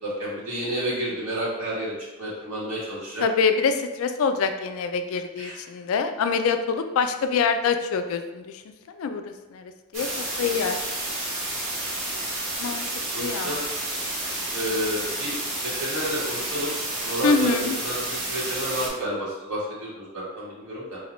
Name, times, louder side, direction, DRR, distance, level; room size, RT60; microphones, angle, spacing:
voice 1, 0.0-3.2 5.4-5.6 10.4-10.5 12.6-12.7 13.1-13.6 14.5-15.4 15.6-16.7 17.0-21.0, right 1 dB, 90° right, -6 dB, 1.4 m, -30 dB
voice 2, 3.2-8.4 8.9-9.2 9.5-10.9 12.6-12.8 13.2-13.6 17.2-17.8, left 5 dB, 70° left, 8 dB, 0.3 m, -25 dB
sound 1, 9.9-18.9, right 2 dB, 65° right, 1.0 m, -30 dB
4.0 x 2.6 x 3.0 m, 1.2 s
head